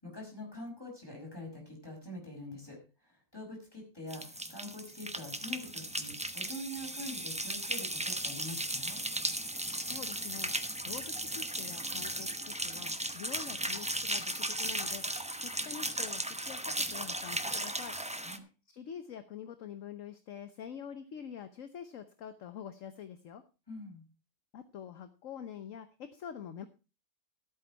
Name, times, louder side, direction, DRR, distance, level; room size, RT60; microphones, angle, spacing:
voice 1, 0.0-9.0 18.2-18.4 23.7-24.0, left 1 dB, 15° left, 0 dB, 5.2 m, -45 dB
sound 1, 4.1-18.4, right 1 dB, 10° right, 0.3 m, -36 dB
voice 2, 9.8-23.4 24.5-26.7, left 8 dB, 55° left, 10 dB, 1.1 m, -46 dB
14.0 x 8.4 x 4.5 m, 0.32 s
omnidirectional pair, 1.8 m